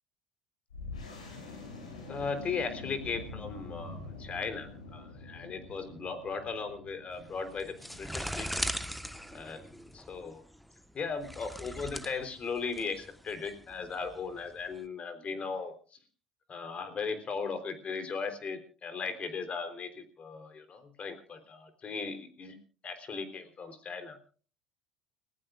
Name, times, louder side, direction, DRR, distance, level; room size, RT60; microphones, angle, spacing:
sound 1, 0.7-9.9, left 3 dB, 85° left, 6.5 m, -46 dB
voice 1, 2.1-8.7 9.3-9.6 9.9-10.4 10.9-16.0 16.5-22.6 22.8-24.2, left 5 dB, 35° left, 9 dB, 3.7 m, -37 dB
sound 2, 7.1-14.8, equal, ahead, 1.3 m, -40 dB
30.0 x 15.5 x 2.5 m, 0.40 s
hypercardioid pair, 65°, 3 cm